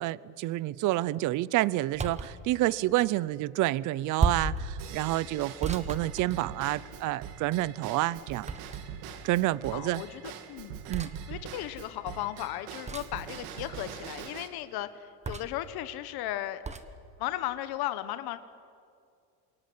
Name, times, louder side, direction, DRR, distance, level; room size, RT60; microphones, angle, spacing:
voice 1, 0.0-8.5 9.2-10.0 10.9-11.1, right 16 dB, 45° right, 21 dB, 0.6 m, -29 dB
sound 1, 1.9-2.4 4.2-4.6 5.6-6.8 8.5-9.1 10.9-11.2 12.9-13.2 15.2-15.7 16.6-16.9, right 4 dB, 15° right, 1.3 m, -32 dB
Drum kit / Drum / Bell, 4.8-14.5, right 8 dB, 90° right, 2.6 m, -43 dB
voice 2, 9.7-10.8 11.3-16.6 17.2-18.4, left 13 dB, 55° left, 12 dB, 1.3 m, -36 dB
27.5 x 22.5 x 9.7 m, 2.3 s
cardioid pair, 155°, 43 cm